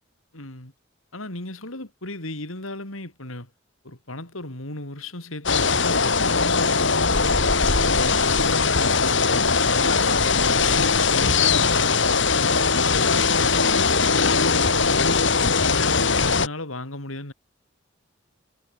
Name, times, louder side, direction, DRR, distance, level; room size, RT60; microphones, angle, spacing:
voice 1, 0.3-0.7 1.1-3.5 3.8-7.4 7.8-12.3 12.9-15.4 15.6-17.3, left 2 dB, 90° left, 5.1 m, -35 dB
sound 1, 5.5-16.5, left 4 dB, 60° left, 2.7 m, -20 dB
head